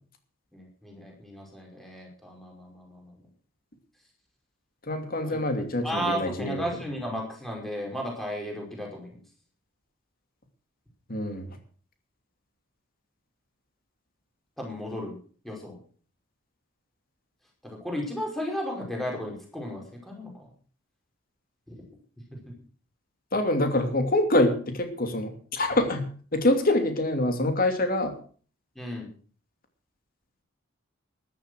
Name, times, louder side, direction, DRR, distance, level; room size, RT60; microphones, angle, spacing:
voice 1, 0.5-3.2 5.2-5.4 5.8-9.2 14.6-15.2 15.4-15.8 17.6-20.5 21.7-21.9 22.3-22.5 28.8-29.1, equal, ahead, -1 dB, 5.2 m, -34 dB
voice 2, 4.9-6.6 11.1-11.5 23.3-28.1, left 1 dB, 45° left, 6 dB, 2.8 m, -25 dB
13.5 x 11.5 x 6.5 m, 0.43 s
head